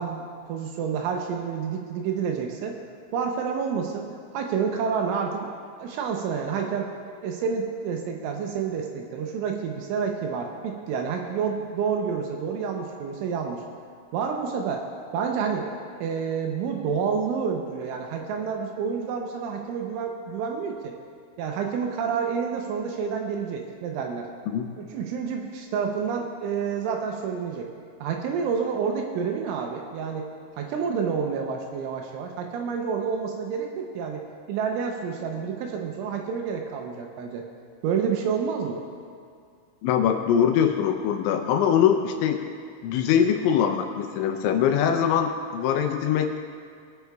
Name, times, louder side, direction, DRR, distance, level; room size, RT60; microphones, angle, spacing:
voice 1, 0.0-2.8 3.1-4.1 4.3-5.5 5.8-6.9 7.2-13.6 14.1-14.8 15.1-15.7 16.0-20.9 21.4-24.3 24.8-27.7 28.0-30.3 30.6-34.2 34.5-37.4 37.8-38.8, right 6 dB, 80° right, 2 dB, 3.0 m, -29 dB
voice 2, 39.8-42.4 42.8-46.4, left 8 dB, 80° left, 5 dB, 2.9 m, -22 dB
20.0 x 9.4 x 2.3 m, 2.2 s
omnidirectional pair, 5.7 m